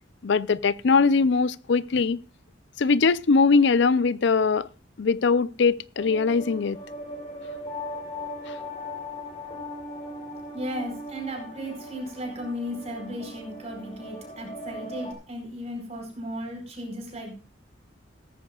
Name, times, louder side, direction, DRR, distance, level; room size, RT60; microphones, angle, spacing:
voice 1, 0.2-2.2 2.8-4.7 5.0-6.8 8.5-8.6, left 4 dB, 65° left, 0.5 m, -21 dB
sound 1, 6.0-15.1, left 1 dB, 30° left, 3.6 m, -39 dB
voice 2, 10.5-17.3, equal, 35° right, 4.9 m, -35 dB
17.0 x 14.0 x 2.3 m
head